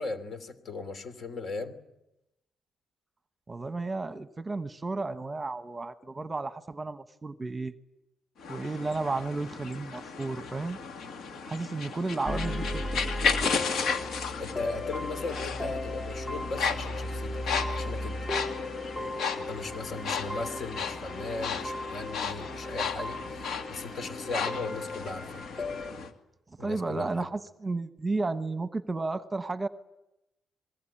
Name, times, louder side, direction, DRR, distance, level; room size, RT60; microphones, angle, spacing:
voice 1, 0.0-1.8 14.4-18.3 19.4-25.4 26.6-27.3, left 3 dB, 55° left, 11 dB, 3.0 m, -38 dB
voice 2, 3.5-7.7 8.5-10.8 11.4-13.0 26.6-29.7, right 3 dB, 20° right, 11 dB, 1.1 m, -33 dB
sound 1, 8.4-26.1, left 5 dB, 70° left, 2.4 m, -35 dB
sound 2, 12.3-25.9, left 1 dB, 30° left, 2.3 m, -36 dB
sound 3, 15.0-15.7, left 2 dB, 15° left, 7.8 m, -61 dB
26.0 x 22.0 x 8.8 m, 0.91 s
cardioid pair, 90°, 0 cm